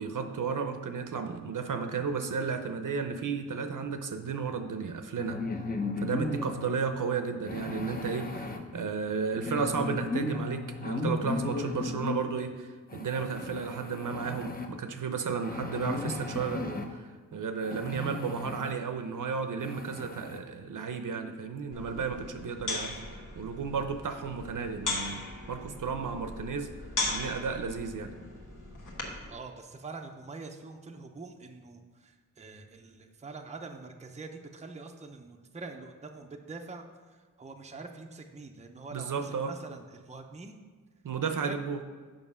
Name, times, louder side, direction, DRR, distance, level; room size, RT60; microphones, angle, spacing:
voice 1, 0.0-5.4 6.0-23.0 23.4-25.2 25.5-26.7 27.1-28.1 38.9-39.5 41.0-41.8, right 5 dB, 70° right, 7 dB, 0.7 m, -33 dB
sound 1, 5.2-6.7 7.5-8.6 9.3-12.2 12.9-14.7 15.4-16.9 17.6-18.7 19.2-19.3 19.6-20.4, left 3 dB, 25° left, 0.6 m, -35 dB
sound 2, 21.7-29.3, left 2 dB, 65° left, 1.3 m, -38 dB
voice 2, 29.3-40.6 41.5-41.6, right 3 dB, 20° right, 4 dB, 0.5 m, -45 dB
7.3 x 5.4 x 5.5 m, 1.5 s
wide cardioid pair, 140°, 33 cm